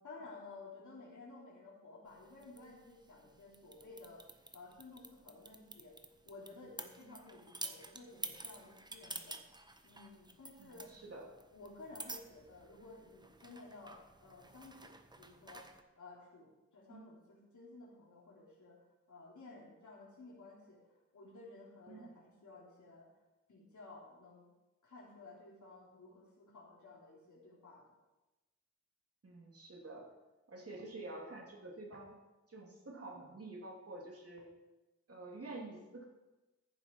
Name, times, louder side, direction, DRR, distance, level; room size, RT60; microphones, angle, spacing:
voice 1, 0.0-4.2 4.5-6.0 6.3-9.4 9.8-10.9 11.5-15.7 16.0-18.8 19.1-20.8 21.1-23.1 23.5-24.5 24.8-27.9, left 3 dB, 75° left, -5 dB, 3.5 m, -54 dB
sound 1, 2.1-15.8, right 2 dB, 15° right, 0.8 m, -51 dB
voice 2, 10.6-11.3 16.9-17.1 21.9-22.1 29.2-30.1 30.5-32.2 32.5-34.5 35.1-36.1, right 2 dB, 50° right, -2 dB, 2.9 m, -49 dB
14.5 x 7.4 x 4.6 m, 1.0 s
wide cardioid pair, 105°, 30 cm